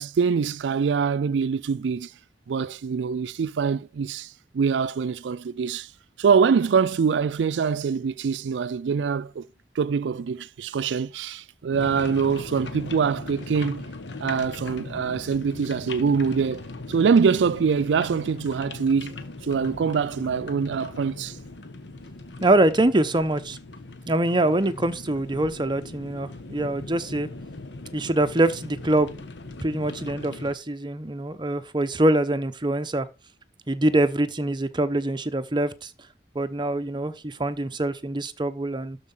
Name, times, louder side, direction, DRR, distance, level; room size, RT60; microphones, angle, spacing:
voice 1, 0.0-2.1 2.5-5.9 6.2-9.5 9.8-13.9 14.2-21.4, right 6 dB, 85° right, 0.4 m, -24 dB
sound 1, 11.7-30.5, left 2 dB, 90° left, 1.3 m, -39 dB
voice 2, 22.4-23.6 24.1-27.3 27.9-29.2 29.6-33.1 33.7-35.9 36.3-39.0, right 1 dB, 25° right, 0.9 m, -24 dB
12.5 x 4.6 x 5.5 m
head